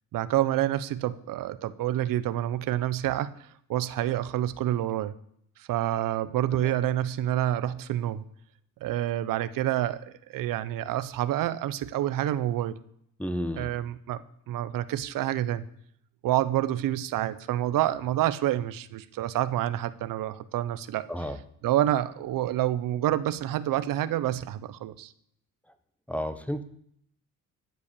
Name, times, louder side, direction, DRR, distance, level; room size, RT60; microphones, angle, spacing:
voice 1, 0.1-3.3 3.7-5.1 5.6-8.2 8.8-10.0 10.3-12.8 13.6-14.2 14.5-15.6 16.2-21.1 21.6-25.1, right 13 dB, 90° right, 15 dB, 0.8 m, -28 dB
voice 2, 13.2-13.7 21.1-21.4 26.1-26.6, equal, 5° left, 10 dB, 1.3 m, -32 dB
14.0 x 8.3 x 6.8 m, 0.68 s
cardioid pair, 100°, 33 cm